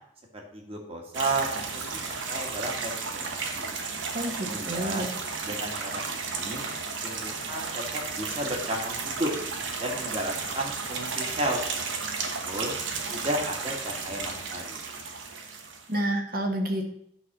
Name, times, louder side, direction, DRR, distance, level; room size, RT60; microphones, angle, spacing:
voice 1, 0.3-3.8 4.4-5.1 5.4-6.7 7.0-9.3 9.8-11.6 12.0-12.1 12.4-12.7 13.1-14.8, right 1 dB, 30° right, 0 dB, 1.9 m, -33 dB
sound 1, 1.1-15.9, right 4 dB, 90° right, 1.2 m, -33 dB
voice 2, 4.1-5.1 15.9-16.9, right 1 dB, 50° right, 3 dB, 1.5 m, -29 dB
9.8 x 4.1 x 6.1 m, 0.71 s
head